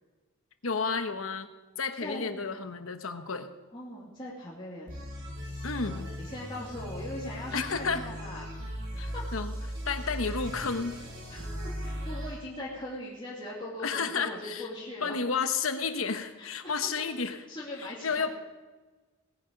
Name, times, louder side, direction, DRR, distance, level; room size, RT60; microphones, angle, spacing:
voice 1, 0.6-1.5 1.8-3.5 5.6-6.1 7.5-8.0 9.0-9.6 9.9-11.0 13.8-14.7 15.0-17.4 17.8-18.3, left 5 dB, 70° left, 8 dB, 1.1 m, -31 dB
voice 2, 2.0-2.4 3.7-4.9 5.4-8.4 8.9-9.3 11.3-11.5 11.8-15.1 16.4-16.7 17.5-18.3, left 1 dB, 20° left, -6 dB, 2.5 m, -40 dB
sound 1, 4.9-12.4, equal, 55° right, 3.8 m, -38 dB
19.0 x 10.0 x 5.3 m, 1.2 s
head